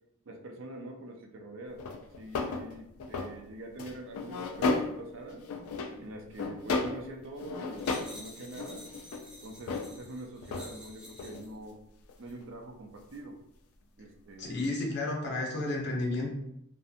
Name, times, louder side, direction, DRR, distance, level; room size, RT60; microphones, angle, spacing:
voice 1, 0.3-5.5 6.0-8.9 9.4-11.8 12.2-13.4 14.0-14.6, right 1 dB, 60° right, 4 dB, 0.4 m, -45 dB
sound 1, 1.8-3.3 3.8-5.1 5.4-6.0 6.4-7.1 7.4-8.2 8.4-9.9 10.4-10.7 11.1-11.5 12.1-12.2 14.6-14.7, left 3 dB, 90° left, 0.3 m, -34 dB
sound 2, 7.8-11.5 12.2-12.4, equal, 5° right, 0.4 m, -50 dB
voice 2, 14.4-16.3, left 2 dB, 50° left, -1 dB, 0.6 m, -32 dB
2.6 x 2.5 x 2.4 m, 0.78 s
head